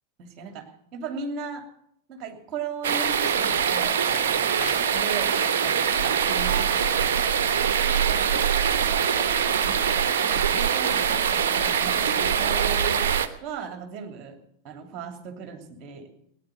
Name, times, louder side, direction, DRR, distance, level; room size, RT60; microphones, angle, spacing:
voice 1, 0.2-1.7 2.1-7.7 8.2-9.9 10.2-13.1 13.4-14.4 14.6-16.1, right 5 dB, 35° right, 5 dB, 2.8 m, -38 dB
sound 1, 2.8-13.3, right 7 dB, 55° right, 1.0 m, -23 dB
sound 2, 3.5-7.1 7.5-7.6 7.9-8.7 9.2-9.3, left 6 dB, 50° left, 2.8 m, -43 dB
17.0 x 10.0 x 8.0 m, 0.71 s
figure-of-eight pair, 90°, 0 cm